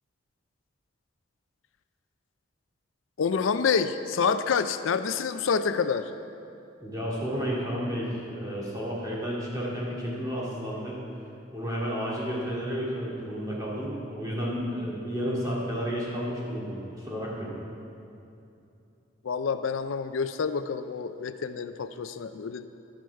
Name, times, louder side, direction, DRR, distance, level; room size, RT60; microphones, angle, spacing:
voice 1, 3.2-6.1 19.2-22.7, left 6 dB, 80° left, 11 dB, 0.4 m, -27 dB
voice 2, 6.8-11.0 11.5-17.5, equal, 20° right, -6 dB, 2.4 m, -32 dB
11.5 x 10.5 x 4.7 m, 2.7 s
head